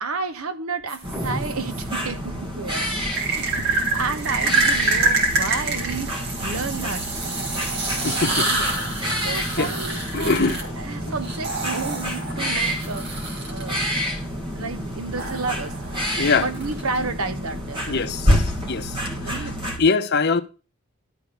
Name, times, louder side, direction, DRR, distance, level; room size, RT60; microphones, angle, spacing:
voice 1, 0.0-2.9 3.2-7.4 8.1-8.7 9.0-10.4 10.8-13.1 13.4-14.1 14.5-15.7 16.3-18.0 19.2-19.6, right 4 dB, 90° right, 1.1 m, -31 dB
sound 1, 0.9-1.8 3.1-13.8 15.2-17.0, right 3 dB, 50° right, 2.8 m, -27 dB
sound 2, 1.0-19.8, equal, 25° right, 1.9 m, -28 dB
sound 3, 1.1-2.6, right 1 dB, 10° right, 1.1 m, -35 dB
voice 2, 8.0-8.5 9.1-9.3 9.6-9.7 10.1-10.6 16.2-16.5 17.9-19.0 19.3-19.5 19.8-20.4, left 4 dB, 50° left, 0.9 m, -23 dB
12.0 x 4.2 x 6.9 m
head